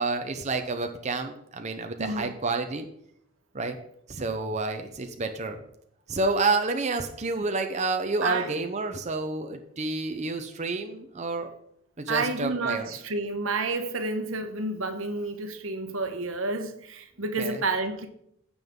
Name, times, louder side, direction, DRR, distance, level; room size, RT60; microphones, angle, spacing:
voice 1, 0.0-2.9 3.5-3.8 4.1-5.6 6.1-11.5 12.0-12.9 17.4-17.6, right 3 dB, 35° right, 0.7 m, -29 dB
voice 2, 2.0-2.3 8.2-8.5 12.1-18.1, right 3 dB, 80° right, 1.1 m, -30 dB
15.5 x 5.4 x 3.7 m
head